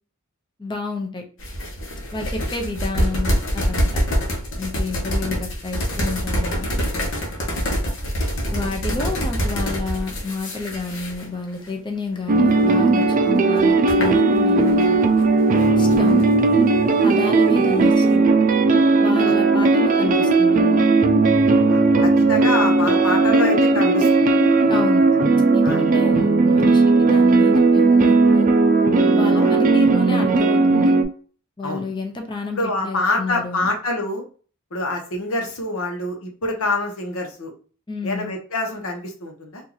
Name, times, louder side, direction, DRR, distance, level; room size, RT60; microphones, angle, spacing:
voice 1, 0.6-1.2 2.1-4.0 4.6-6.7 8.5-15.0 15.7-16.2 17.0-18.3 19.0-20.9 24.7-25.0 25.5-28.5 29.1-30.9 31.6-33.7 37.9-38.3, left 3 dB, 20° left, 3 dB, 0.7 m, -30 dB
sound 1, 1.4-11.7 12.1-12.4 13.0-14.9 15.2-16.3, equal, 65° left, 1.0 m, -25 dB
sound 2, 12.3-31.0, right 3 dB, 40° right, 0.4 m, -16 dB
voice 2, 21.7-24.2 25.6-25.8 29.3-29.5 31.6-31.8 32.5-34.2 34.7-37.5 38.0-39.6, left 2 dB, 90° left, 2 dB, 1.0 m, -26 dB
3.0 x 2.6 x 3.9 m, 0.40 s
head